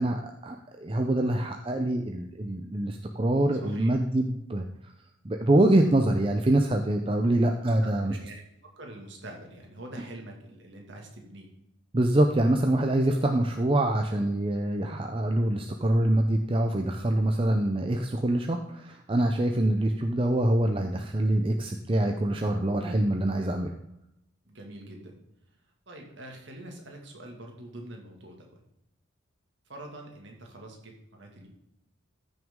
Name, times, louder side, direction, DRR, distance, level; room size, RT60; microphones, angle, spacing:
voice 1, 0.0-4.9 5.2-8.2 11.9-23.7, right 1 dB, 25° right, 4 dB, 0.5 m, -25 dB
voice 2, 3.6-3.9 7.2-7.3 7.6-8.3 8.8-11.5 24.4-25.2 25.9-28.6 29.7-31.5, right 1 dB, 60° right, 1 dB, 2.1 m, -45 dB
14.0 x 6.2 x 3.7 m, 0.83 s
head